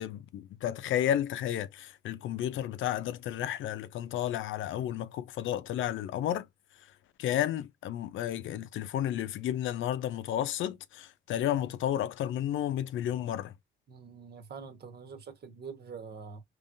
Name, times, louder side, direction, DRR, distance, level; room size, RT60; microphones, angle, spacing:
voice 1, 0.0-6.5 7.2-13.5, left 11 dB, 75° left, 0.6 m, -32 dB
voice 2, 13.9-16.4, right 5 dB, 55° right, 1.3 m, -45 dB
3.8 x 3.1 x 2.5 m
cardioid pair, 90°, 20 cm